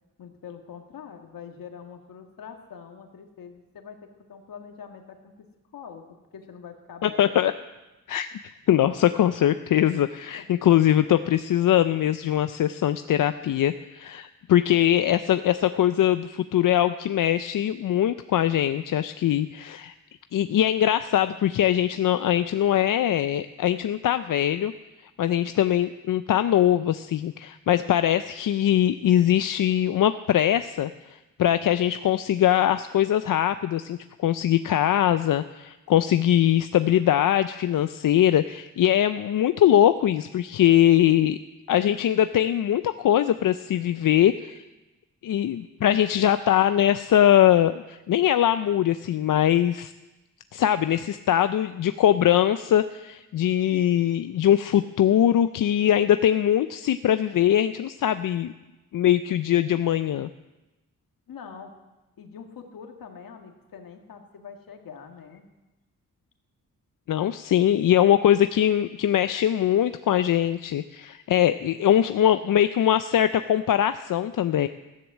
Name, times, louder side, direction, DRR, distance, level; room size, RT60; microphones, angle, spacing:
voice 1, 0.2-5.5 5.7-6.0 6.3-7.3 9.4-9.5 61.3-61.7 62.2-65.5, left 7 dB, 90° left, 4 dB, 1.9 m, -44 dB
voice 2, 7.0-7.5 8.1-8.3 8.7-19.9 20.3-24.7 25.2-41.4 41.7-44.6 45.2-49.9 50.5-58.5 58.9-60.3 67.1-74.7, left 11 dB, 70° left, 11 dB, 0.5 m, -22 dB
15.0 x 10.5 x 7.3 m, 1.1 s
wide cardioid pair, 135°, 33 cm